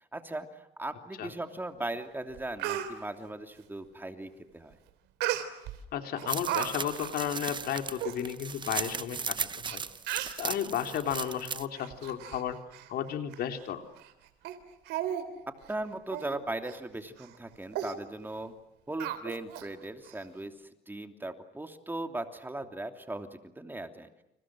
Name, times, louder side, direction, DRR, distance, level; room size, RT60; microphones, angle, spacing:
voice 1, 0.1-4.8 15.7-18.5 18.9-24.1, right 2 dB, 10° right, 6 dB, 2.9 m, -38 dB
Speech, 1.9-2.0 2.3-2.9 5.2-5.8 6.2-6.7 7.0-7.2 7.7-7.8 8.0-8.2 8.9-9.0 9.7-9.8 10.1-10.4 11.1-11.3 11.7-12.4 12.7-12.9 13.3-13.4 14.0-14.1 14.4-14.6 14.9-15.3 15.6-15.7 16.1-16.3 16.7-16.8 17.2-17.4 17.7-17.9 19.0-19.7 20.0-20.1, right 12 dB, 90° right, 3.6 m, -34 dB
voice 2, 5.9-9.8 10.4-12.6 12.9-13.8, left 9 dB, 65° left, 6 dB, 3.7 m, -33 dB
sound 1, 6.3-11.7, right 5 dB, 25° right, 1.0 m, -37 dB
30.0 x 29.0 x 6.4 m, 0.87 s
cardioid pair, 110°, 17 cm